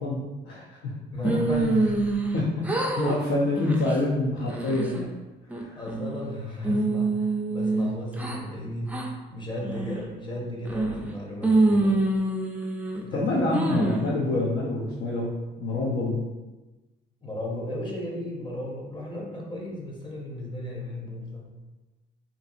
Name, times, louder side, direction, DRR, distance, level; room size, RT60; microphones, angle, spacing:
voice 1, 0.0-0.9 2.3-5.1 5.5-5.8 13.1-15.3 15.6-16.2, left 2 dB, 80° left, -5 dB, 0.6 m, -27 dB
voice 2, 1.1-2.3 5.8-9.0 9.3-12.0 13.0-13.3 15.9-16.1 17.2-21.5, left 1 dB, 25° left, -2 dB, 0.7 m, -35 dB
sound 1, 1.2-2.4 2.6-3.2 3.6-3.9 4.4-5.0 5.5-6.2 6.6-8.4 8.9-9.1 9.6-10.1 10.6-11.1 11.4-13.0 13.5-14.1, right 2 dB, 10° right, 0.3 m, -25 dB
2.8 x 2.6 x 2.4 m, 1.1 s
cardioid pair, 90°, 20 cm